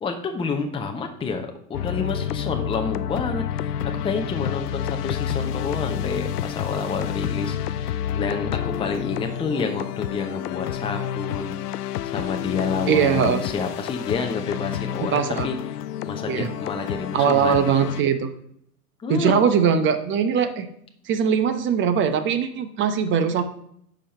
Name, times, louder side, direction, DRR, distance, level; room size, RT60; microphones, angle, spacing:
voice 1, 0.0-15.6 16.0-17.9 19.0-19.3, left 5 dB, 10° left, 4 dB, 0.8 m, -29 dB
sound 1, 1.7-18.0, left 10 dB, 80° left, 0.5 m, -29 dB
voice 2, 12.9-13.4 15.0-15.5 16.3-16.5 17.1-18.3 19.1-20.7 21.1-23.4, right 7 dB, 25° right, 10 dB, 0.8 m, -21 dB
8.7 x 5.1 x 5.5 m, 0.69 s
hypercardioid pair, 110°, 46 cm